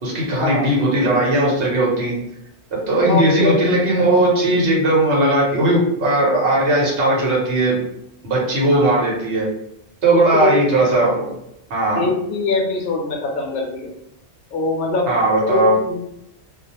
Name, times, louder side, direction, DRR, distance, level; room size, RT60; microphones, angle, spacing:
voice 1, 0.0-2.1 2.7-7.8 8.2-9.5 10.0-11.3 11.7-12.1 15.1-15.7, right 1 dB, 80° right, -3 dB, 1.1 m, -17 dB
voice 2, 3.0-3.6 8.7-8.9 10.1-10.6 12.0-13.9 14.5-15.1 15.5-16.0, left 3 dB, 60° left, 0 dB, 0.7 m, -23 dB
2.4 x 2.1 x 2.8 m, 0.79 s
omnidirectional pair, 1.2 m